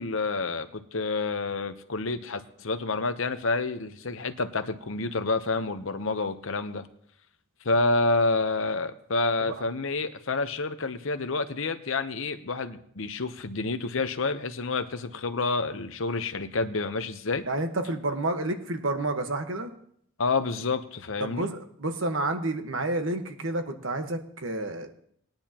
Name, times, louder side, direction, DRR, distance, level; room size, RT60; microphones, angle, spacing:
voice 1, 0.0-6.9 7.6-17.4 20.2-21.5, left 3 dB, 65° left, 10 dB, 0.9 m, -28 dB
voice 2, 17.5-19.7 21.2-24.9, right 2 dB, 60° right, 6 dB, 1.4 m, -30 dB
20.5 x 10.5 x 3.0 m, 0.67 s
head